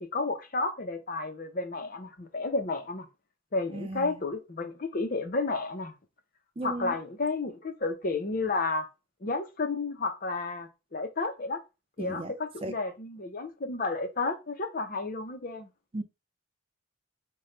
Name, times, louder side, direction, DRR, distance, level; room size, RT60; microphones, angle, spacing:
voice 1, 0.0-3.1 3.5-5.9 6.6-8.9 9.2-11.6 12.0-15.7, left 3 dB, 40° left, 0.6 m, -32 dB
voice 2, 3.7-4.1 6.6-6.9 12.0-12.3 12.6-12.7 15.9-16.0, right 1 dB, 25° right, 0.4 m, -35 dB
5.1 x 2.2 x 4.2 m
head